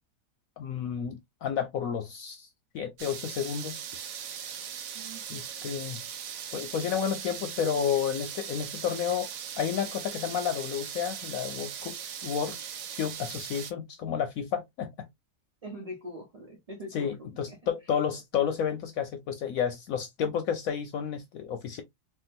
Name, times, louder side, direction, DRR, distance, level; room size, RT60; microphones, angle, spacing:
voice 1, 0.6-2.5 2.7-3.8 5.3-6.0 6.5-11.9 12.2-12.6 13.0-14.9 16.9-21.8, left 8 dB, 70° left, 0.8 m, -31 dB
sound 1, 3.0-13.7, right 8 dB, 65° right, 0.9 m, -39 dB
voice 2, 4.9-5.7 15.6-17.6, equal, 35° right, 0.6 m, -43 dB
3.7 x 2.3 x 2.5 m
omnidirectional pair, 1.8 m